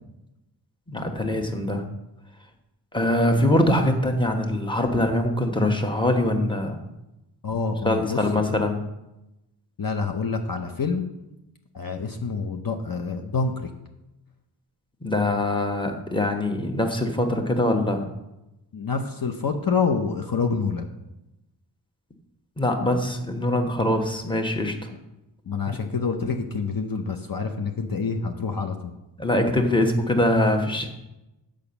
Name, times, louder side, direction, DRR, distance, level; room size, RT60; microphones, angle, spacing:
voice 1, 0.9-1.8 2.9-6.8 7.8-8.8 15.0-18.1 22.6-24.7 29.2-30.9, left 1 dB, 10° left, 4 dB, 1.0 m, -23 dB
voice 2, 7.4-8.2 9.8-11.1 11.7-13.7 18.7-20.9 25.5-28.9, left 5 dB, 50° left, 3 dB, 0.7 m, -27 dB
7.0 x 5.1 x 6.9 m, 0.94 s
wide cardioid pair, 80°, 44 cm